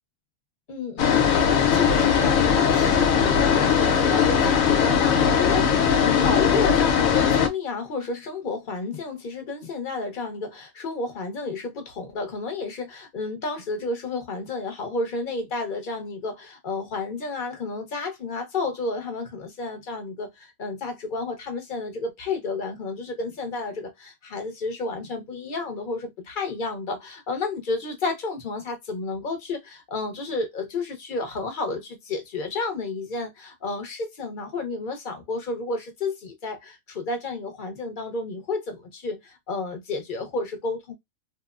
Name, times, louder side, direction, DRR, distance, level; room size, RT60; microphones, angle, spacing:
voice 1, 0.7-40.9, left 3 dB, 45° left, 0.8 m, -31 dB
sound 1, 1.0-7.5, left 7 dB, 85° left, 1.0 m, -20 dB
2.9 x 2.0 x 2.3 m
omnidirectional pair, 1.4 m